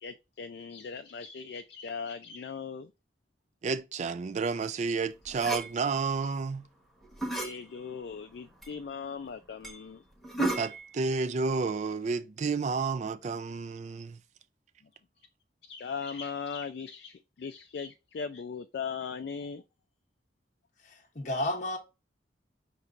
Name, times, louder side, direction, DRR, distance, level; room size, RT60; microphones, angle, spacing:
voice 1, 0.0-2.9 7.3-10.0 15.6-19.6, left 5 dB, 65° left, 0.3 m, -39 dB
voice 2, 3.6-6.7 10.6-14.2, right 4 dB, 40° right, 0.3 m, -31 dB
sound 1, 5.3-5.7 7.0-7.5 8.1-8.2 8.6-8.7 9.0-9.1 9.6-9.8 10.2-10.9, right 2 dB, ahead, 1.1 m, -33 dB
voice 3, 20.8-21.8, left 1 dB, 45° left, 0.8 m, -32 dB
5.8 x 3.0 x 2.5 m
head